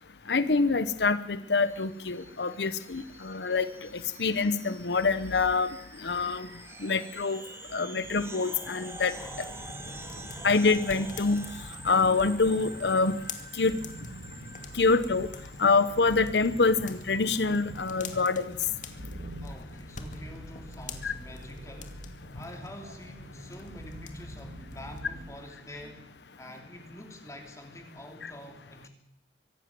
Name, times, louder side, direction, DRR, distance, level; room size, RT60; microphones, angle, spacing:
voice 1, 0.3-3.9 4.2-5.7 6.0-6.5 6.8-7.4 7.7-9.1 10.4-11.4 11.8-13.2 13.5-13.8 14.7-15.3 15.6-18.5 21.0-21.1 28.2-28.3, left 4 dB, 75° left, 13 dB, 0.9 m, -25 dB
sound 1, 1.6-17.9, right 3 dB, 15° right, 2.3 m, -47 dB
sound 2, 9.1-25.0, left 2 dB, 45° left, 2.3 m, -45 dB
sound 3, 13.4-26.3, right 1 dB, 75° right, 2.0 m, -47 dB
voice 2, 19.4-22.0 22.3-26.1 26.4-28.9, left 1 dB, 20° left, 3 dB, 2.9 m, -46 dB
24.0 x 12.0 x 9.4 m, 0.78 s
head